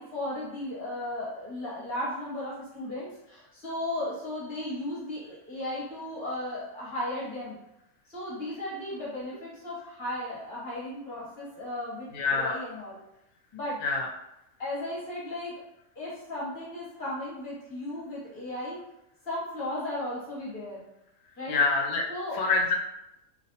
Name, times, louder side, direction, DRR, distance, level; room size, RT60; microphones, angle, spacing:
voice 1, 0.0-7.6 8.1-13.0 13.5-13.8 14.6-15.6 15.9-18.8 19.2-20.8 21.4-21.6 22.1-22.4, left 1 dB, 40° left, -6 dB, 1.0 m, -35 dB
voice 2, 12.1-12.6 13.8-14.1 21.5-22.0 22.4-22.7, left 4 dB, 85° left, 0 dB, 1.0 m, -25 dB
2.7 x 2.1 x 2.7 m, 0.85 s
omnidirectional pair, 1.5 m